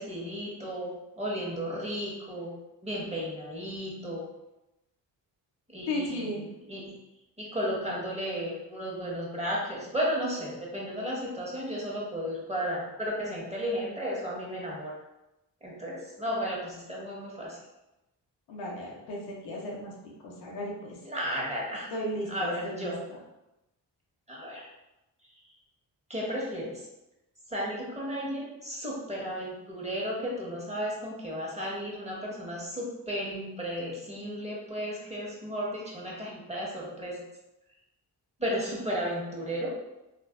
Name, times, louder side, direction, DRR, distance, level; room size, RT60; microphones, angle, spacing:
voice 1, 0.0-2.5 2.8-4.3 5.7-7.0 7.4-14.9 15.6-17.6 21.0-21.9 22.3-23.0 24.3-24.7 26.1-26.8 27.5-37.2 38.4-39.7, equal, 15° right, -4 dB, 1.3 m, -34 dB
voice 2, 5.9-6.5 18.5-19.9 20.2-21.0 21.9-22.9, left 1 dB, 85° left, -3 dB, 0.7 m, -35 dB
3.2 x 2.4 x 2.4 m, 0.94 s
supercardioid pair, 45°, 43 cm